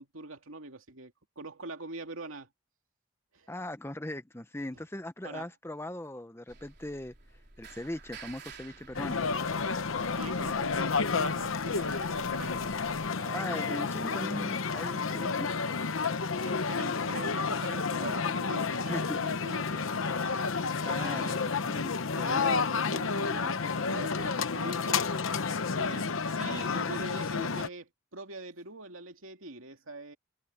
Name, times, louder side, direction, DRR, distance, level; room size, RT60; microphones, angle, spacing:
voice 1, 0.0-2.5 3.3-3.5 5.2-5.5 10.1-12.7 13.2-14.5 16.4-19.9 20.9-21.4 21.7-25.1 25.7-30.2, right 2 dB, 80° right, 2.5 m, -43 dB
voice 2, 3.5-7.1 7.6-9.3 13.3-15.5 18.6-19.2 20.7-21.8, left 1 dB, 10° left, 0.8 m, -39 dB
sound 1, 6.5-13.1, right 4 dB, 50° right, 4.3 m, -51 dB
sound 2, 8.9-27.7, left 5 dB, 75° left, 0.9 m, -31 dB
head